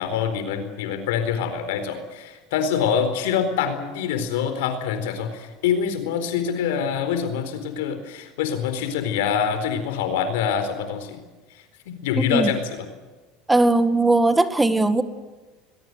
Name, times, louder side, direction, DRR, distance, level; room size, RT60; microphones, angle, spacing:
voice 1, 0.0-11.2 11.9-12.9, left 7 dB, 80° left, 10 dB, 4.3 m, -25 dB
voice 2, 13.5-15.0, right 2 dB, 10° right, 11 dB, 1.9 m, -18 dB
21.5 x 21.5 x 8.1 m, 1.3 s
supercardioid pair, 95°, 0 cm